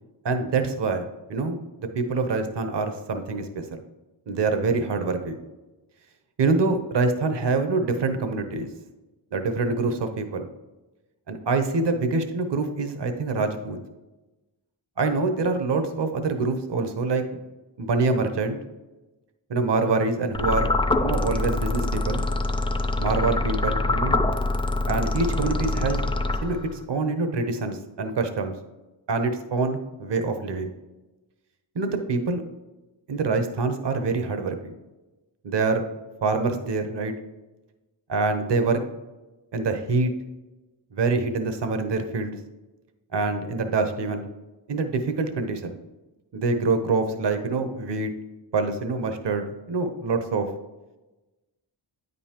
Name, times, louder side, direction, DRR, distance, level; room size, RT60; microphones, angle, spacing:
voice 1, 0.2-1.0 1.3-1.6 1.9-3.6 4.3-5.4 6.4-8.7 9.3-10.5 11.3-13.8 15.0-17.4 17.8-18.6 19.5-20.7 21.0-22.2 23.0-24.2 24.9-26.0 26.4-28.5 29.1-30.7 31.7-32.4 33.1-34.7 35.4-35.8 36.2-37.1 38.1-38.8 39.5-40.1 40.9-42.4 43.1-44.3 44.7-45.8 46.3-48.1 48.5-50.5, right 3 dB, 60° right, 7 dB, 0.8 m, -25 dB
sound 1, 20.3-26.8, left 2 dB, 15° left, 0.3 m, -25 dB
9.1 x 5.4 x 2.9 m, 1.1 s
wide cardioid pair, 75°, 47 cm